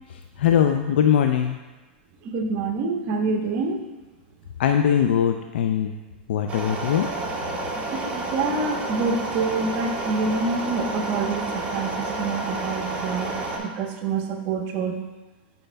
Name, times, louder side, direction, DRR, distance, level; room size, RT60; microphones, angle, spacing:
voice 1, 0.4-1.6 4.6-5.9 6.3-7.1, left 9 dB, 75° left, 5 dB, 0.4 m, -21 dB
voice 2, 2.2-3.8 7.7-14.9, right 4 dB, 45° right, 3 dB, 0.9 m, -27 dB
sound 1, 6.5-13.6, right 2 dB, 25° right, 1.2 m, -30 dB
8.8 x 5.1 x 2.2 m, 1.2 s
hypercardioid pair, 125°, 6 cm